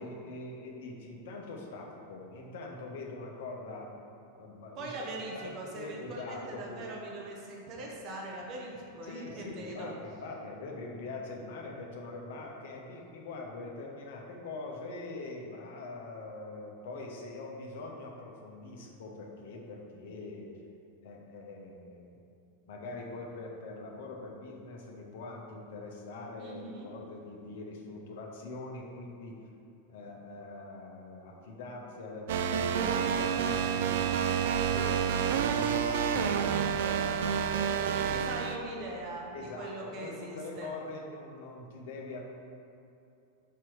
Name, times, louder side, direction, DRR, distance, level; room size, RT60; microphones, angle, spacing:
voice 1, 0.0-3.9 4.4-5.1 5.3-6.9 7.7-7.9 9.0-20.5 21.0-22.2 22.7-29.4 29.9-34.1 34.6-35.1 35.5-38.3 39.3-42.2, left 3 dB, 55° left, 0 dB, 1.0 m, -43 dB
voice 2, 4.8-10.0 26.4-26.9 38.1-40.7, right 2 dB, 35° right, -2 dB, 1.2 m, -41 dB
sound 1, 32.3-38.6, right 7 dB, 55° right, 0.4 m, -29 dB
5.6 x 4.6 x 6.2 m, 2.6 s
figure-of-eight pair, 90°, 0 cm